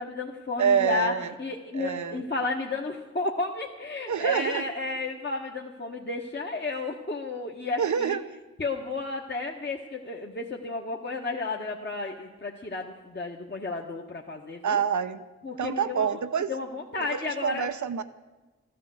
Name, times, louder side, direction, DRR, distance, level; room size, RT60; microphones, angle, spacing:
voice 1, 0.0-1.1 1.4-8.2 8.6-14.8 15.4-16.2 16.5-17.7, left 3 dB, 35° left, 0 dB, 1.5 m, -32 dB
voice 2, 0.6-1.3 1.7-2.2 4.1-4.6 7.8-8.2 14.6-15.2 15.6-16.5 17.1-18.0, right 7 dB, 80° right, 11 dB, 0.9 m, -26 dB
14.0 x 11.0 x 7.9 m, 1.2 s
cardioid pair, 45°, 29 cm